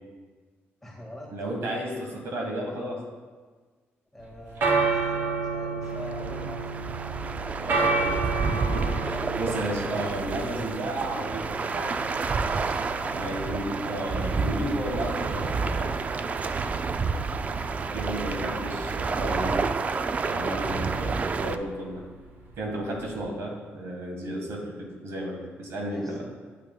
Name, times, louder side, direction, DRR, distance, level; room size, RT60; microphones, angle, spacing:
voice 1, 0.8-1.3 4.1-7.0 9.0-9.4 13.0-13.4 14.3-14.6 17.6-19.7 21.3-21.6 25.8-26.4, left 1 dB, 5° left, -3 dB, 1.8 m, -44 dB
voice 2, 1.3-3.0 7.6-8.1 8.5-12.0 13.2-15.9 17.3-17.6 17.9-19.6 20.2-22.1 22.6-26.2, right 1 dB, 75° right, 0 dB, 1.6 m, -33 dB
sound 1, 4.2-23.3, right 3 dB, 55° right, 0.9 m, -32 dB
sound 2, 5.8-21.6, right 4 dB, 30° right, 0.3 m, -29 dB
9.3 x 8.7 x 2.3 m, 1.4 s
cardioid pair, 140°, 5 cm